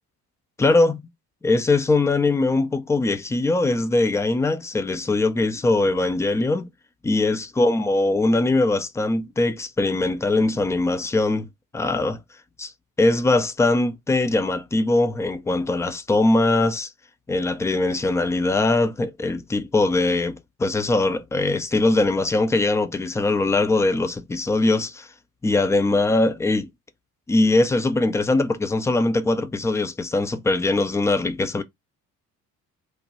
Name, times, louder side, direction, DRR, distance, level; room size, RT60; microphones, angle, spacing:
voice 1, 0.6-1.0 1.4-6.7 7.0-11.5 11.7-12.2 12.6-12.7 13.0-16.9 17.3-25.1 25.4-26.7 27.3-31.6, left 2 dB, 5° left, 0.3 m, -21 dB
3.1 x 2.1 x 2.9 m
figure-of-eight pair, 45°, 46 cm